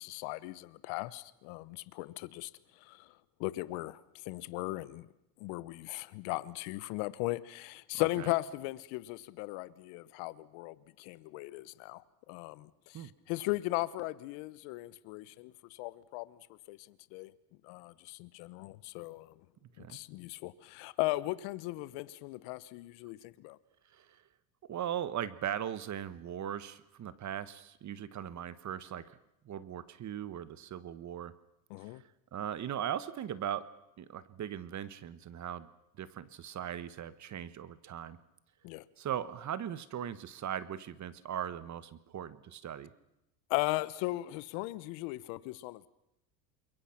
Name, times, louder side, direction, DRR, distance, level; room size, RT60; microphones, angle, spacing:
voice 1, 0.0-2.5 2.8-3.1 3.4-4.0 4.2-5.1 5.4-12.0 12.3-16.4 16.7-17.3 17.6-19.3 19.9-23.6 31.7-32.0 38.6-38.8 43.5-45.9, left 20 dB, 65° left, 1.2 m, -37 dB
voice 2, 24.7-29.2 29.4-31.3 31.8-31.9 32.3-33.7 34.0-35.7 36.0-38.2 39.0-42.9, right 10 dB, 35° right, 1.3 m, -39 dB
27.5 x 22.5 x 5.9 m
supercardioid pair, 110°, 49 cm